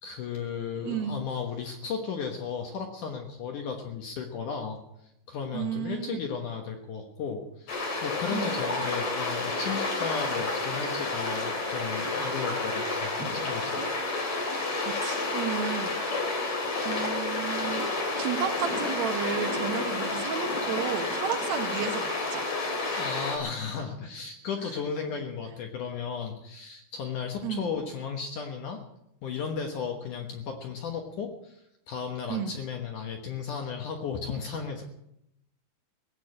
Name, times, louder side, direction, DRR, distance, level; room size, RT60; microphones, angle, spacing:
voice 1, 0.0-4.8 5.3-13.8 23.0-28.8 29.2-34.8, left 6 dB, 65° left, 3 dB, 2.5 m, -35 dB
voice 2, 0.7-1.2 5.5-6.2 8.3-8.6 14.8-16.0 16.8-17.8 18.2-22.5 24.6-24.7 25.1-25.2 27.4-27.7 32.3-32.5, right 9 dB, 80° right, 6 dB, 1.6 m, -33 dB
sound 1, 7.7-23.4, left 3 dB, 45° left, 4.3 m, -30 dB
18.0 x 8.6 x 8.6 m, 0.80 s
omnidirectional pair, 4.4 m